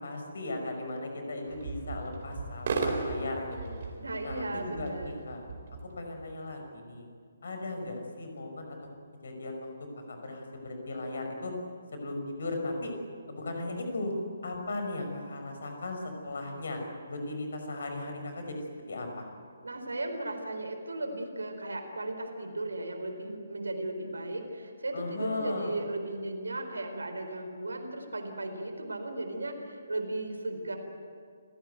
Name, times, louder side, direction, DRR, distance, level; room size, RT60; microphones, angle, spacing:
voice 1, 0.0-3.8 4.2-5.4 6.0-7.1 7.4-8.8 9.2-9.7 10.1-11.5 11.9-12.9 13.3-14.1 14.4-16.8 17.1-19.3 24.9-25.8, left 2 dB, 55° left, 4 dB, 5.6 m, -37 dB
sound 1, 1.5-6.4, right 3 dB, 45° right, 4.1 m, -36 dB
voice 2, 4.0-5.2 19.6-30.8, right 2 dB, 70° right, 6 dB, 4.2 m, -36 dB
27.5 x 17.5 x 9.4 m, 2.1 s
figure-of-eight pair, 140°, 0 cm